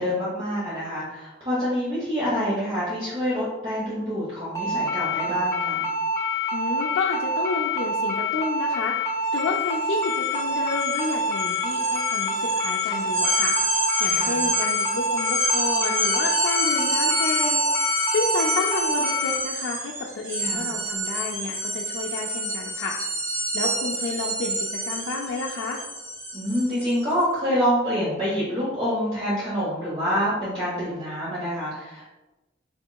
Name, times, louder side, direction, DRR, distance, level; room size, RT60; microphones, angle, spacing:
voice 1, 0.0-5.9 14.1-14.4 20.4-20.7 26.3-32.1, equal, 30° right, -8 dB, 0.9 m, -26 dB
sound 1, 4.6-19.4, left 2 dB, 15° left, 0.7 m, -26 dB
voice 2, 6.5-13.5 14.0-23.0 23.5-25.8, left 3 dB, 70° left, -2 dB, 0.4 m, -30 dB
sound 2, 9.3-9.4 9.7-27.0, right 1 dB, 85° right, 1.4 m, -28 dB
4.2 x 2.9 x 2.2 m, 1.1 s
head